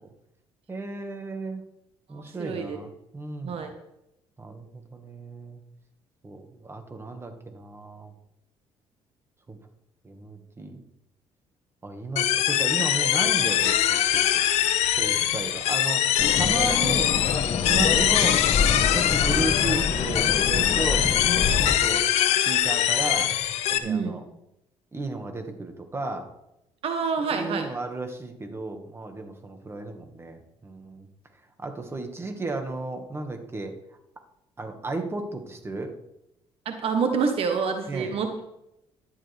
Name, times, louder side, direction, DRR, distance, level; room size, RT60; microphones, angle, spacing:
voice 1, 0.7-1.6 2.1-3.6 4.4-5.6 6.2-8.1 9.5-9.6 10.0-10.8 11.8-14.4 15.0-16.1 16.4-17.2 17.7-18.4 18.9-21.1 21.6-22.1 22.5-23.3 23.7-24.2 24.9-26.3 27.2-31.1 31.6-33.7 34.6-35.9 37.9-38.2, right 2 dB, 20° right, 5 dB, 2.0 m, -34 dB
voice 2, 2.1-2.8 3.4-3.7 17.7-17.9 23.8-24.2 26.8-27.6 36.6-38.4, right 5 dB, 60° right, 5 dB, 1.4 m, -27 dB
sound 1, 12.2-23.8, left 11 dB, 75° left, 1.0 m, -23 dB
sound 2, 16.2-21.8, left 5 dB, 50° left, 1.4 m, -27 dB
14.0 x 11.0 x 3.6 m, 0.85 s
cardioid pair, 85°, 11 cm